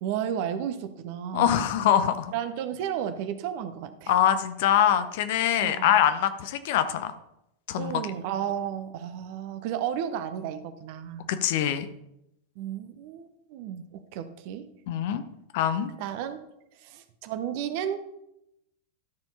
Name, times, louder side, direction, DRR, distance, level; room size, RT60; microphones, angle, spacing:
voice 1, 0.0-1.6 2.3-4.1 5.6-5.9 7.8-11.3 12.6-14.7 16.0-16.4 16.8-18.0, right 9 dB, 45° right, 10 dB, 0.8 m, -33 dB
voice 2, 1.3-2.3 4.1-7.1 7.7-8.0 11.3-11.9 14.9-15.2 15.5-15.9, left 10 dB, 50° left, 11 dB, 0.7 m, -24 dB
12.5 x 4.5 x 5.4 m, 0.85 s
figure-of-eight pair, 90°, 0 cm